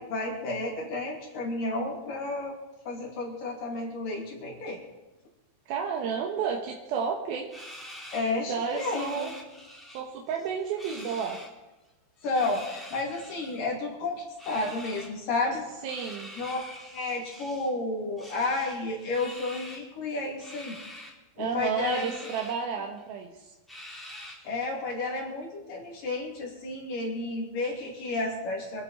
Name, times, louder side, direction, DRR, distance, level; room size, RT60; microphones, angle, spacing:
voice 1, 0.0-2.5 2.9-4.8 8.1-9.3 12.2-15.6 16.4-16.6 16.9-20.8 21.4-22.3 24.4-28.8, left 2 dB, 50° left, -1 dB, 3.8 m, -31 dB
voice 2, 5.7-7.5 8.2-9.3 9.9-11.4 15.8-16.3 21.4-23.5, right 6 dB, 70° right, 0 dB, 2.4 m, -31 dB
sound 1, 7.5-10.0 10.3-11.5 12.2-13.6 14.4-15.1 15.8-17.7 18.2-19.9 20.4-21.1 21.8-22.5 23.0-23.1 23.7-24.6, left 1 dB, ahead, 2.3 m, -45 dB
25.0 x 9.8 x 4.3 m, 1.1 s
omnidirectional pair, 5.7 m